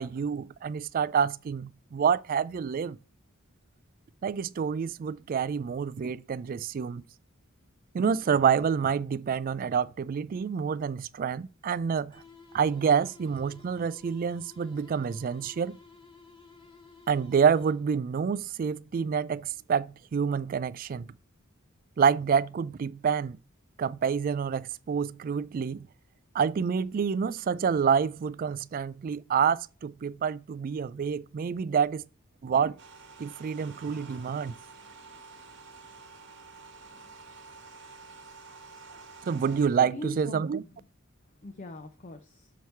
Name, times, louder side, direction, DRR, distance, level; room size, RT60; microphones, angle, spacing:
voice 1, 0.0-3.0 4.2-7.0 7.9-12.2 12.5-15.8 17.1-21.1 22.0-23.4 23.8-25.9 26.3-32.0 32.4-32.8 33.2-34.5 39.2-40.6, right 6 dB, 40° right, 0.3 m, -28 dB
sound 1, 12.1-18.1, left 4 dB, 20° left, 1.4 m, -54 dB
sound 2, 32.8-39.7, right 4 dB, 60° right, 1.1 m, -49 dB
voice 2, 39.8-40.8 41.4-42.5, left 1 dB, 40° left, 0.6 m, -42 dB
7.0 x 4.7 x 4.5 m
head